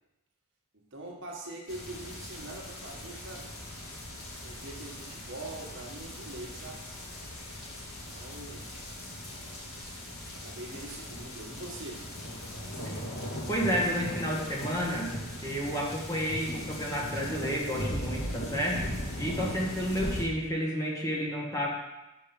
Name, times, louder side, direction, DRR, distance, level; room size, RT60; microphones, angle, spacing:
voice 1, 0.7-3.5 4.4-6.9 7.9-8.7 10.3-12.1 19.4-19.6, right 2 dB, 55° right, -1 dB, 1.4 m, -43 dB
sound 1, 1.7-20.2, equal, 65° left, 2.1 m, -39 dB
voice 2, 13.5-15.1 15.4-21.7, equal, 15° left, -3 dB, 1.3 m, -31 dB
6.4 x 5.2 x 5.8 m, 0.97 s
head